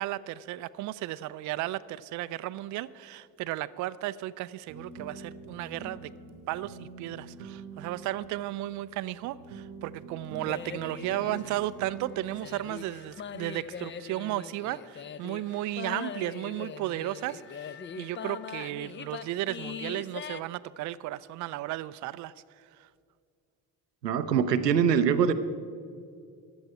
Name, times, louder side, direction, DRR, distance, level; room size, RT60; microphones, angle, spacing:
voice 1, 0.0-6.1 6.5-22.9, right 15 dB, 40° right, 16 dB, 0.4 m, -34 dB
sound 1, 4.7-13.9, right 4 dB, 65° right, 1.0 m, -46 dB
sound 2, 10.5-20.4, left 7 dB, 25° left, 0.5 m, -42 dB
voice 2, 24.0-25.3, right 7 dB, 85° right, 11 dB, 0.6 m, -23 dB
15.5 x 11.5 x 4.9 m, 2.3 s
figure-of-eight pair, 40°, 48 cm